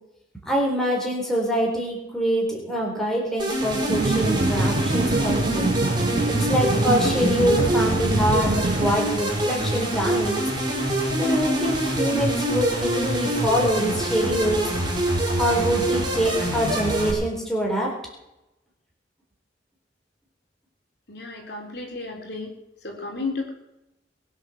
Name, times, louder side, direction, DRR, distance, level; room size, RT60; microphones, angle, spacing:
voice 1, 0.5-5.7 6.3-10.4 11.1-14.7 15.4-18.0, equal, 5° left, -2 dB, 4.1 m, -25 dB
sound 1, 3.4-17.1, right 1 dB, 25° right, 5.1 m, -25 dB
sound 2, 3.9-9.0, right 2 dB, 45° right, 0.7 m, -25 dB
voice 2, 21.1-22.6 22.8-23.5, left 3 dB, 60° left, 0 dB, 4.0 m, -33 dB
21.5 x 8.1 x 7.2 m, 0.90 s
head